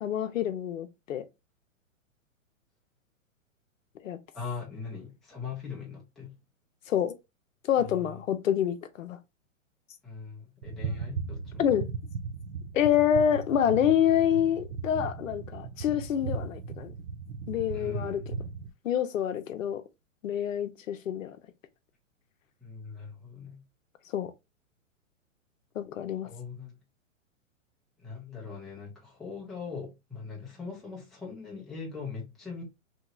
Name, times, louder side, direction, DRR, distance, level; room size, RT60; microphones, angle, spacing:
voice 1, 0.0-1.2 4.0-4.2 6.9-7.1 7.7-9.2 11.6-11.9 12.7-16.9 17.5-18.3 18.8-19.8 20.2-21.4 24.1-24.3 25.8-26.3, left 9 dB, 70° left, 0.6 m, -27 dB
voice 2, 4.3-6.3 7.8-8.2 10.0-11.6 17.7-18.4 22.6-23.6 26.2-26.8 28.0-32.6, left 5 dB, ahead, 0.4 m, -41 dB
sound 1, 10.6-18.7, right 5 dB, 65° right, 0.5 m, -37 dB
2.8 x 2.8 x 2.3 m
hypercardioid pair, 120°, 40 cm